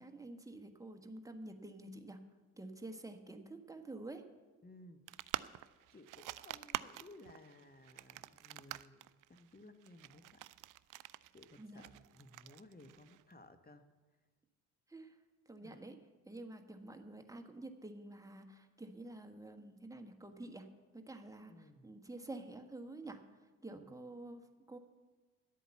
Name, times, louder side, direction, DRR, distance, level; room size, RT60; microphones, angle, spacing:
voice 1, 0.0-2.2 2.6-4.2 11.6-11.8 14.9-15.2 15.5-16.0 16.2-20.7 20.9-21.5 21.8-23.2 23.6-24.8, right 2 dB, 10° right, 5 dB, 1.4 m, -49 dB
voice 2, 4.6-5.0 5.9-10.5 11.3-13.9 15.6-15.9 21.5-21.9 23.7-24.0, left 2 dB, 20° left, 9 dB, 1.3 m, -58 dB
sound 1, 5.1-13.3, right 15 dB, 50° right, 0.4 m, -47 dB
11.5 x 8.2 x 7.1 m, 1.4 s
hypercardioid pair, 40°, 42 cm